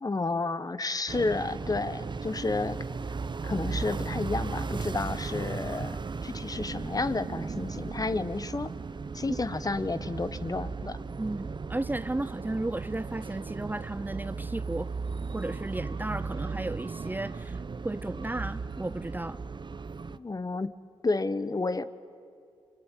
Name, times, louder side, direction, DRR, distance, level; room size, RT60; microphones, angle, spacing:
voice 1, 0.0-2.8 3.4-8.7 9.1-11.0 20.1-20.7 21.0-21.9, left 3 dB, 30° left, 13 dB, 1.3 m, -31 dB
sound 1, 1.1-20.2, right 4 dB, 40° right, 0.9 m, -36 dB
voice 2, 11.2-14.9 15.3-17.6 17.8-19.4, right 2 dB, 15° right, 15 dB, 0.6 m, -34 dB
25.5 x 24.0 x 9.3 m, 2.5 s
supercardioid pair, 40°, 12 cm